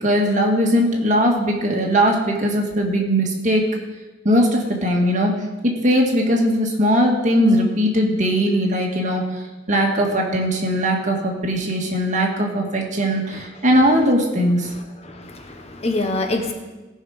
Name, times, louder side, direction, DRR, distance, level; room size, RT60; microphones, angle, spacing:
voice 1, 0.0-3.7 4.2-5.4 5.6-9.2 9.7-14.7, equal, 40° right, 0 dB, 1.9 m, -19 dB
voice 2, 14.6-16.5, left 2 dB, 35° left, 4 dB, 1.1 m, -26 dB
17.5 x 5.9 x 4.9 m, 1.1 s
head